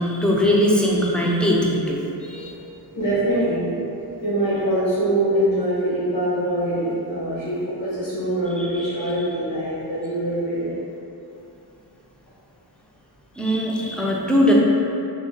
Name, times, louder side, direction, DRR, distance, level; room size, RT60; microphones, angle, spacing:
voice 1, 0.0-2.5 8.6-9.1 13.4-14.5, equal, ahead, -4 dB, 0.5 m, -21 dB
voice 2, 2.9-3.7 4.2-10.7, right 1 dB, 85° left, -12 dB, 1.4 m, -23 dB
3.9 x 2.2 x 3.7 m, 2.8 s
cardioid pair, 90°, 44 cm